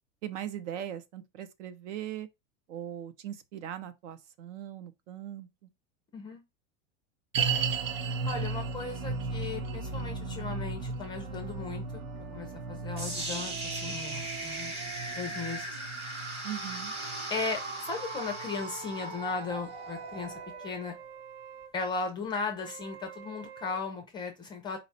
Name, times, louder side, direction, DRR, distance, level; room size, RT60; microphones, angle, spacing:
voice 1, 0.2-2.3 2.7-5.7 16.4-16.9, right 11 dB, 70° right, 0.8 m, -40 dB
sound 1, 7.3-18.6 18.9-19.0 19.6-19.7, right 4 dB, 90° right, 0.9 m, -36 dB
voice 2, 8.2-12.0 12.3-14.7 15.1-15.8 17.3-21.0 21.7-24.8, left 4 dB, 10° left, 0.4 m, -36 dB
sound 2, 11.1-15.7 16.4-21.7 22.6-23.8, right 9 dB, 45° right, 0.5 m, -47 dB
sound 3, 13.0-21.0, right 1 dB, 15° right, 1.0 m, -39 dB
4.2 x 2.3 x 4.1 m
supercardioid pair, 155°, 38 cm